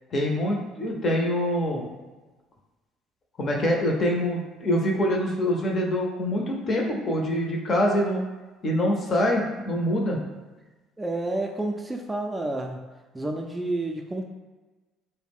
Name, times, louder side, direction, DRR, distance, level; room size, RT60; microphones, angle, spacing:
voice 1, 0.1-1.9 3.4-8.2 8.6-10.2, equal, 45° left, 0 dB, 0.6 m, -25 dB
voice 2, 11.0-12.8 13.1-14.2, right 2 dB, 15° right, 2 dB, 0.3 m, -29 dB
2.3 x 2.1 x 3.5 m, 1.2 s
hypercardioid pair, 65°, 0 cm